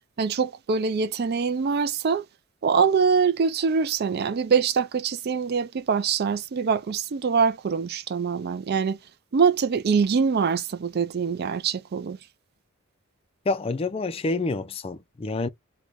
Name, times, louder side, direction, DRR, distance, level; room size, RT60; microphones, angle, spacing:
voice 1, 0.2-2.2 2.6-9.0 9.3-12.2, right 5 dB, 50° right, 0.4 m, -24 dB
voice 2, 13.5-15.5, left 3 dB, 25° left, 0.4 m, -28 dB
3.1 x 2.2 x 3.8 m
head